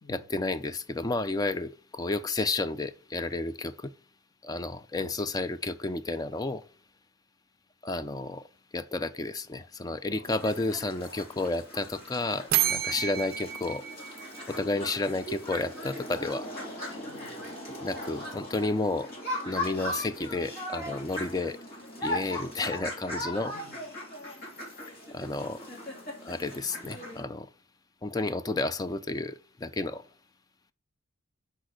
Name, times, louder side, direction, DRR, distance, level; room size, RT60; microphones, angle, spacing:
voice 1, 0.1-3.9 4.4-6.6 7.8-8.4 8.7-13.8 14.5-16.5 17.8-19.1 19.4-21.6 22.0-23.5 25.1-25.7 26.2-27.5 28.0-30.0, left 2 dB, 20° left, 0.3 m, -31 dB
sound 1, 10.2-27.2, left 1 dB, 45° left, 2.8 m, -39 dB
sound 2, 12.5-15.3, right 12 dB, 45° right, 0.4 m, -31 dB
voice 2, 12.8-13.1 17.0-17.6 23.5-23.8, left 3 dB, 60° left, 1.9 m, -54 dB
6.3 x 5.1 x 6.3 m
head